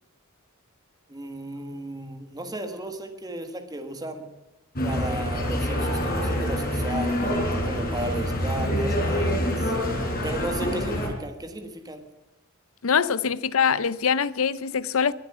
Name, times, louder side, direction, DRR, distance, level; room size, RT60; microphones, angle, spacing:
voice 1, 1.1-4.3 4.8-9.7 10.2-12.0, right 1 dB, 20° right, 1.5 m, -35 dB
sound 1, 4.8-11.1, equal, 45° left, 5.0 m, -26 dB
voice 2, 12.8-15.1, left 6 dB, 75° left, 0.6 m, -23 dB
22.0 x 7.4 x 8.6 m
head